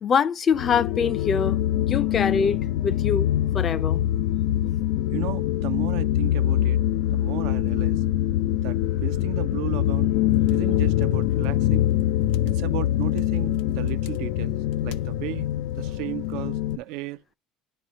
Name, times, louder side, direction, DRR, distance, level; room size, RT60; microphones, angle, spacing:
voice 1, 0.0-1.6 1.9-2.6 2.8-3.3 3.5-4.0, left 6 dB, 30° left, 0.5 m, -23 dB
sound 1, 0.5-16.8, left 13 dB, 85° left, 0.5 m, -24 dB
voice 2, 5.1-6.8 7.1-8.0 8.6-10.1 10.5-11.9 12.4-15.5 15.8-17.2, right 17 dB, 70° right, 0.5 m, -35 dB
11.5 x 4.2 x 2.9 m
cardioid pair, 155°, 0 cm